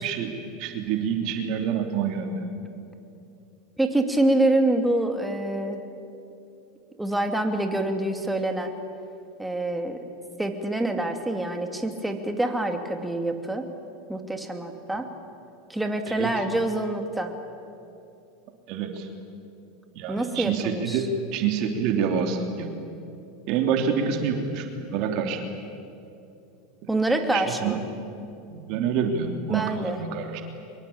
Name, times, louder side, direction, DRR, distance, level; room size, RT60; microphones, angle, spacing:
voice 1, 0.0-2.4 16.1-16.3 18.7-19.1 19.9-22.8 23.5-24.7 24.9-25.4 27.3-27.8 28.5-30.4, right 6 dB, 55° right, 4 dB, 3.2 m, -27 dB
voice 2, 3.8-5.8 7.0-8.7 9.4-10.0 10.4-13.7 14.1-15.1 15.7-17.3 20.1-21.1 26.9-27.8 29.5-30.0, right 1 dB, 5° right, 5 dB, 2.6 m, -26 dB
24.5 x 22.5 x 8.8 m, 2.7 s
supercardioid pair, 115°, 0 cm